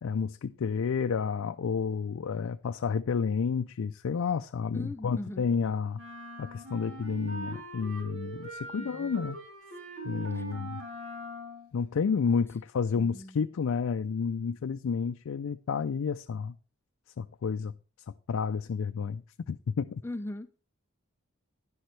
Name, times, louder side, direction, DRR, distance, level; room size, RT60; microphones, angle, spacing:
voice 1, 0.0-6.0 6.4-9.4 10.0-10.8 11.7-16.5 17.2-17.7 18.3-19.2 19.5-20.0, left 6 dB, 85° left, 0.4 m, -30 dB
voice 2, 4.7-5.5 8.8-9.2 10.3-10.5 12.9-13.5 20.0-20.6, left 1 dB, 10° left, 0.5 m, -40 dB
sound 1, 5.9-11.7, right 2 dB, 80° right, 3.2 m, -42 dB
10.5 x 10.5 x 3.3 m
head